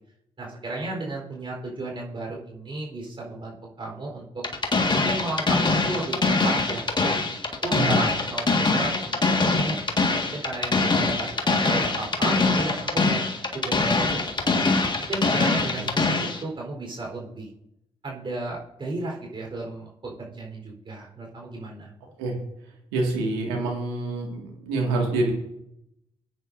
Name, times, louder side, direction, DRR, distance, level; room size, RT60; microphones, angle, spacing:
voice 1, 0.4-4.3 4.9-7.2 7.6-9.8 10.1-13.2 13.5-17.5 18.0-21.9, right 2 dB, 40° right, -1 dB, 4.0 m, -34 dB
sound 1, 4.4-16.4, left 3 dB, 35° left, 1.8 m, -23 dB
voice 2, 7.7-8.0 15.8-15.9 22.2-22.4 22.9-25.3, right 2 dB, 85° right, 0 dB, 2.0 m, -26 dB
19.0 x 9.3 x 2.6 m, 0.81 s
hypercardioid pair, 45°, 13 cm